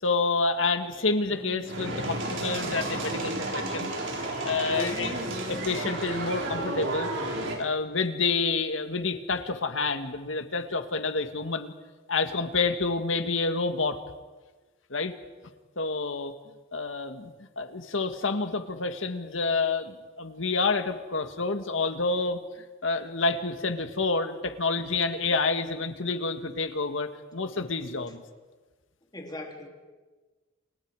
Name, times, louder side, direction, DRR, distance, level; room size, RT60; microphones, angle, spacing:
voice 1, 0.0-3.9 4.2-5.1 5.5-7.1 7.6-11.7 12.1-14.0 14.9-15.1 15.8-16.3 16.7-22.4 22.8-28.2, left 3 dB, 75° left, 8 dB, 1.9 m, -28 dB
sound 1, 1.2-4.0 4.4-5.9, right 1 dB, 45° right, 3.5 m, -42 dB
sound 2, 1.7-7.6, right 2 dB, 65° right, 4.8 m, -32 dB
voice 2, 4.7-5.2 29.1-29.7, equal, 20° left, 2 dB, 3.2 m, -36 dB
28.5 x 28.5 x 4.9 m, 1.3 s
head